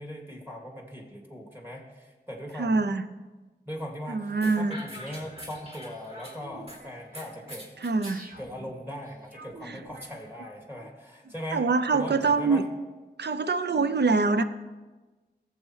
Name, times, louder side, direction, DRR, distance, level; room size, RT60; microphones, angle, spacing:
voice 1, 0.0-2.7 3.7-7.7 8.4-11.6 11.9-12.6, equal, 15° right, 0 dB, 2.3 m, -39 dB
voice 2, 2.6-3.0 4.1-4.8 7.8-8.3 9.7-9.8 11.5-12.6 13.2-14.4, right 4 dB, 75° right, 10 dB, 0.6 m, -24 dB
sound 1, 4.4-6.8 7.1-8.2, equal, 35° right, 2.9 m, -43 dB
sound 2, 5.1-10.9, right 1 dB, 55° right, 1.4 m, -50 dB
17.0 x 7.3 x 3.2 m, 1.2 s
wide cardioid pair, 40°, 17 cm